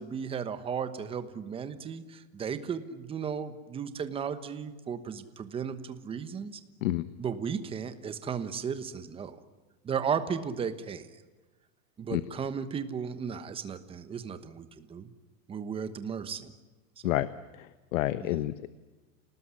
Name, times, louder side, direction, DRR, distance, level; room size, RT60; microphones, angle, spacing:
voice 1, 0.0-6.6 7.2-9.4 9.8-11.1 12.0-15.1 15.5-16.5 17.0-17.2 18.2-18.4, right 7 dB, 15° right, 11 dB, 1.2 m, -35 dB
voice 2, 17.5-18.7, left 15 dB, 70° left, 14 dB, 1.2 m, -29 dB
28.5 x 19.0 x 9.8 m, 1.2 s
supercardioid pair, 170°, 42 cm